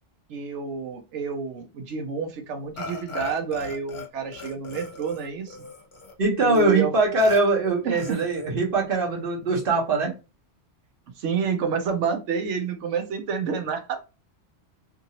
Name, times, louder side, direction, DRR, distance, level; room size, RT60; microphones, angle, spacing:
voice 1, 0.3-5.6 6.4-6.9 7.8-8.2 11.2-14.0, right 6 dB, 80° right, 6 dB, 1.0 m, -29 dB
Burping eructation, 2.8-4.1 4.3-6.2 6.5-6.7 7.2-7.4 8.0-8.5, left 1 dB, 45° left, 0.8 m, -38 dB
voice 2, 6.2-10.1, right 3 dB, 50° right, -1 dB, 1.2 m, -22 dB
2.8 x 2.6 x 2.8 m, 0.29 s
omnidirectional pair, 1.2 m